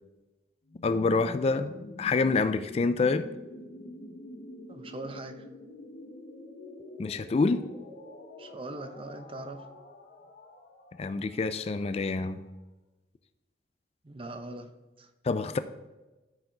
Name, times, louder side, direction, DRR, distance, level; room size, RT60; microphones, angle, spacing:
sound 1, 0.7-12.4, left 1 dB, 80° left, 1.4 m, -47 dB
voice 1, 0.8-1.7 2.0-3.3 7.0-7.7 11.0-12.5 15.2-15.6, left 3 dB, 35° left, 0.3 m, -27 dB
voice 2, 4.7-5.5 8.4-9.7 14.0-14.7 15.0-15.1, right 2 dB, 30° right, 0.7 m, -41 dB
13.0 x 4.7 x 3.9 m
head